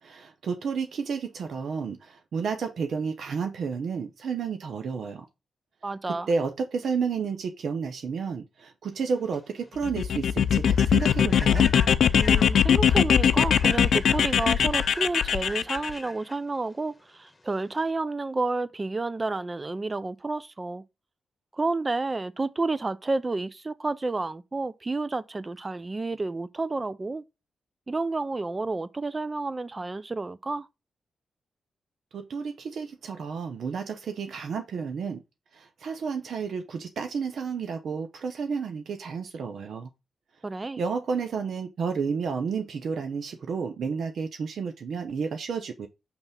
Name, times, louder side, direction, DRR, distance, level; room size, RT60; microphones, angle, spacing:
voice 1, 0.0-5.3 6.1-11.7 32.1-35.2 35.5-39.9 40.8-45.9, right 5 dB, 70° right, 0.7 m, -31 dB
voice 2, 5.8-6.3 12.2-20.8 21.5-27.2 27.9-30.7 40.4-40.8, right 3 dB, 25° right, 0.5 m, -30 dB
Human voice / Train, 9.0-17.9, left 2 dB, 20° left, 1.4 m, -42 dB
sound 1, 9.8-15.9, left 8 dB, 80° left, 0.4 m, -21 dB
6.0 x 3.3 x 5.5 m
cardioid pair, 90°, 0 cm